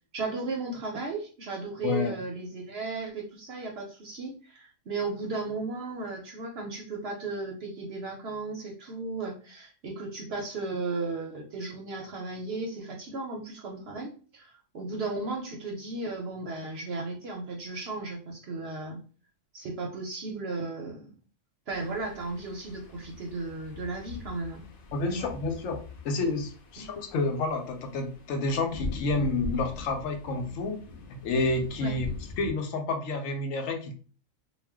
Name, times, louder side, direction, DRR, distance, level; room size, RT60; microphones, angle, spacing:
voice 1, 0.1-19.0 19.5-21.2 21.7-24.6 25.1-25.3 26.8-26.9 31.8-32.0, right 3 dB, 65° right, 1 dB, 0.7 m, -35 dB
voice 2, 1.8-2.1 24.9-30.8 31.2-33.9, left 3 dB, 75° left, 5 dB, 0.9 m, -29 dB
sound 1, 21.7-32.5, left 3 dB, 60° left, 0.6 m, -42 dB
2.4 x 2.1 x 3.4 m, 0.40 s
omnidirectional pair, 1.4 m